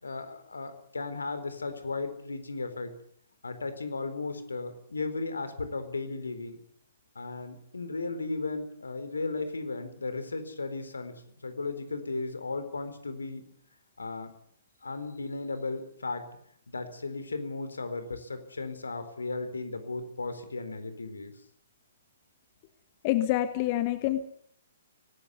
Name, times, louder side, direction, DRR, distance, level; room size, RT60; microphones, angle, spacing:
voice 1, 0.0-2.9 3.4-6.6 7.1-11.1 11.4-13.5 14.0-14.4 14.8-16.3 16.7-21.3, left 3 dB, 70° left, 10 dB, 4.1 m, -35 dB
voice 2, 23.0-24.2, left 14 dB, 35° left, 10 dB, 1.5 m, -27 dB
24.0 x 18.5 x 8.3 m, 0.67 s
figure-of-eight pair, 125°, 0 cm